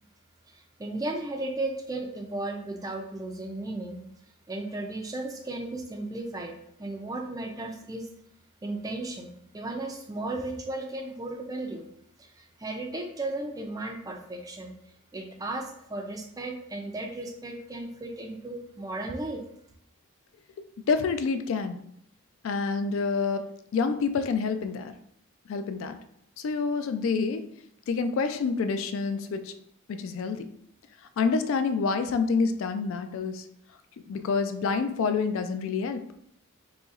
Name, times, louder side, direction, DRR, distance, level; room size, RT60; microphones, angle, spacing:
voice 1, 0.8-4.0 4.5-8.1 8.6-11.8 12.2-14.7 15.1-19.4, right 2 dB, 15° right, 3 dB, 0.3 m, -35 dB
voice 2, 20.9-21.8 22.4-24.9 25.5-26.0 26.4-27.4 27.9-29.5 29.9-30.5 31.2-33.5 34.1-36.0, left 4 dB, 65° left, 9 dB, 0.3 m, -27 dB
4.1 x 2.9 x 2.4 m, 0.71 s
head